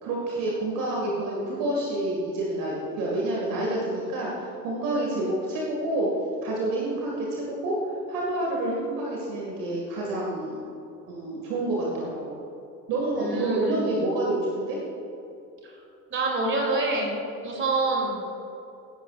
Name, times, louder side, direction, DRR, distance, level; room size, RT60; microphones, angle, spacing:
voice 1, 0.0-6.1 6.4-10.6 11.1-12.4 12.9-14.8, right 1 dB, 45° right, -3 dB, 2.0 m, -28 dB
voice 2, 13.1-13.9 16.1-17.1 17.4-18.2, right 3 dB, 25° right, 0 dB, 2.7 m, -26 dB
16.5 x 11.0 x 2.4 m, 2.8 s
figure-of-eight pair, 75°, 48 cm